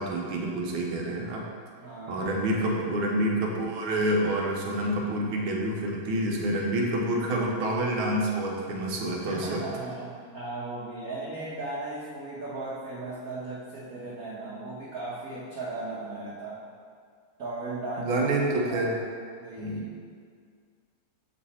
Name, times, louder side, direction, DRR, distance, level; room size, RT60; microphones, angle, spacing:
voice 1, 0.0-1.4 2.1-9.6 18.1-19.0 19.6-19.9, right 1 dB, 75° right, -1 dB, 1.5 m, -28 dB
voice 2, 1.8-2.3 9.3-16.6 17.4-18.3 18.7-18.9 19.4-19.8, right 2 dB, 55° right, -9 dB, 1.1 m, -37 dB
7.6 x 3.1 x 4.1 m, 2.1 s
omnidirectional pair, 2.4 m